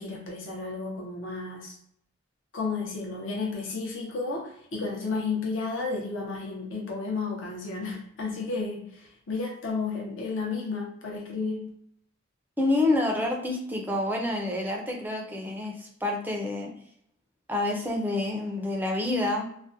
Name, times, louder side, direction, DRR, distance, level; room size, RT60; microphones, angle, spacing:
voice 1, 0.0-1.8 2.5-11.7, left 4 dB, 70° left, -2 dB, 0.7 m, -32 dB
voice 2, 12.6-16.7 17.5-19.6, left 2 dB, 10° right, 1 dB, 0.4 m, -28 dB
2.4 x 2.1 x 2.6 m, 0.69 s
head